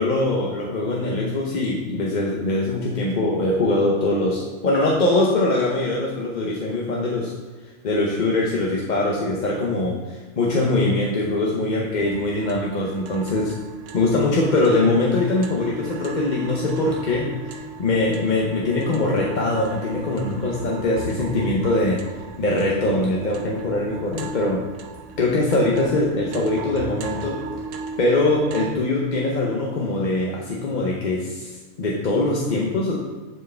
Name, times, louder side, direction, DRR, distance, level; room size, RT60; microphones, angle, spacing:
voice 1, 0.0-7.3 7.8-13.5 13.9-22.0 22.4-24.6 25.2-27.4 28.0-32.9, left 2 dB, 45° left, -2 dB, 0.8 m, -22 dB
sound 1, 12.0-28.7, right 3 dB, 85° right, 1.1 m, -36 dB
9.6 x 4.6 x 3.3 m, 1.3 s
omnidirectional pair, 1.3 m